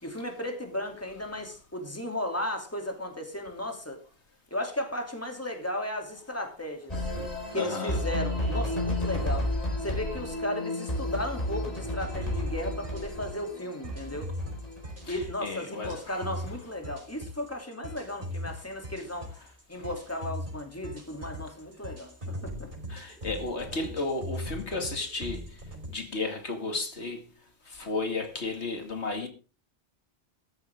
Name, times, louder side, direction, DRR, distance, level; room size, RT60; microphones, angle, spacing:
voice 1, 0.0-4.0 4.5-7.1 7.5-9.5 9.8-14.3 15.1-19.3 19.7-22.7, left 1 dB, 15° left, 2.8 m, -35 dB
sound 1, 6.9-15.2, left 1 dB, 35° left, 4.9 m, -32 dB
voice 2, 7.5-8.0 15.1-16.2 22.9-25.4 25.9-27.3 27.7-29.3, left 3 dB, 80° left, 2.5 m, -33 dB
sound 2, 12.0-25.9, left 1 dB, 50° right, 5.4 m, -40 dB
14.5 x 12.5 x 3.6 m
omnidirectional pair, 1.1 m